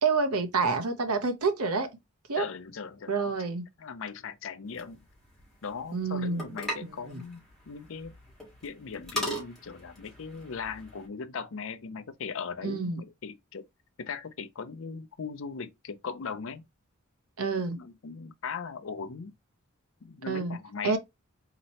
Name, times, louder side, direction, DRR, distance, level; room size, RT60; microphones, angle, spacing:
voice 1, 0.0-1.9 2.3-2.4 3.1-3.6 5.9-6.5 6.8-7.2 12.6-13.0 17.4-17.8 20.3-20.6 20.8-21.0, right 4 dB, 85° right, 0.8 m, -28 dB
voice 2, 2.3-3.3 3.8-5.0 5.6-8.1 8.6-13.6 14.0-16.7 17.7-19.3 20.0-21.0, left 5 dB, 65° left, 0.5 m, -39 dB
sound 1, 4.7-11.1, left 1 dB, ahead, 1.7 m, -40 dB
4.1 x 2.9 x 2.9 m
head